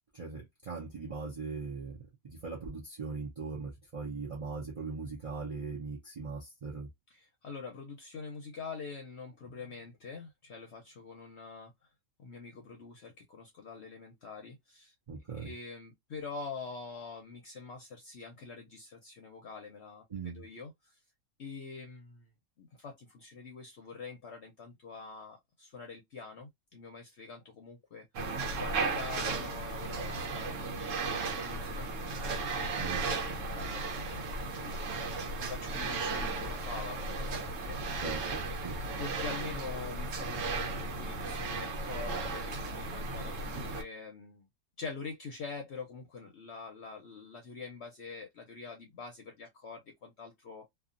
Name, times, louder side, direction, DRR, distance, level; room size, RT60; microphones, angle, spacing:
voice 1, 0.1-2.0 2.2-6.9 15.1-15.5 20.1-20.4 32.8-33.1 38.0-38.8, right 4 dB, 45° right, 0.4 m, -40 dB
voice 2, 7.1-11.7 12.2-14.9 15.3-20.0 20.3-20.9 21.4-22.3 22.6-32.7 33.0-34.8 35.3-37.8 39.0-44.5 44.8-50.7, left 4 dB, 60° left, 0.8 m, -45 dB
sound 1, 28.1-43.8, right 3 dB, 65° right, 1.1 m, -35 dB
2.7 x 2.4 x 2.4 m
omnidirectional pair, 1.5 m